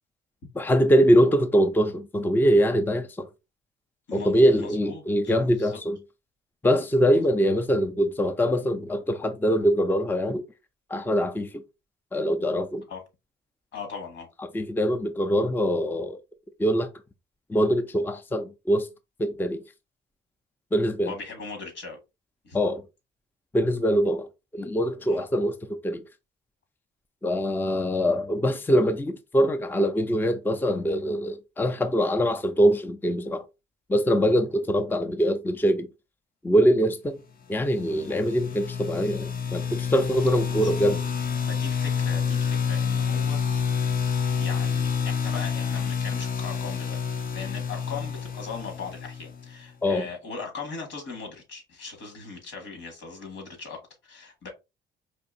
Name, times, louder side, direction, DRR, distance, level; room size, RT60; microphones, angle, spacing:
voice 1, 0.5-3.3 4.1-6.0 6.6-10.4 10.9-11.5 12.1-12.8 14.5-16.2 16.6-16.9 17.5-18.9 19.2-19.6 20.7-21.1 22.5-22.8 23.5-26.0 27.2-33.4 33.9-35.9 36.4-37.2 37.5-41.0 49.8-50.1, equal, 10° left, 0.5 m, -23 dB
voice 2, 4.1-5.8 7.1-7.2 12.9-13.0 13.7-14.3 21.1-22.0 22.4-22.6 25.0-25.2 34.2-34.4 38.0-38.2 40.6-40.7 41.4-43.8 44.2-54.5, left 4 dB, 75° left, 1.8 m, -39 dB
sound 1, 37.8-49.5, left 6 dB, 45° left, 0.7 m, -28 dB
4.3 x 2.9 x 2.6 m
cardioid pair, 90°, 20 cm